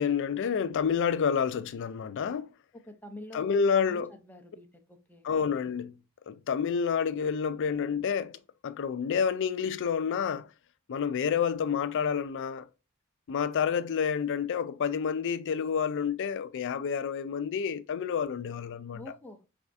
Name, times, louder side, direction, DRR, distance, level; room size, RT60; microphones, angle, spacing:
voice 1, 0.0-2.5 3.3-4.1 5.2-6.0 6.3-8.4 8.6-10.5 10.9-12.7 13.3-19.0, left 6 dB, 60° left, 0.4 m, -29 dB
voice 2, 2.7-5.3 18.9-19.4, left 1 dB, 10° left, 0.5 m, -47 dB
4.2 x 3.4 x 2.5 m
head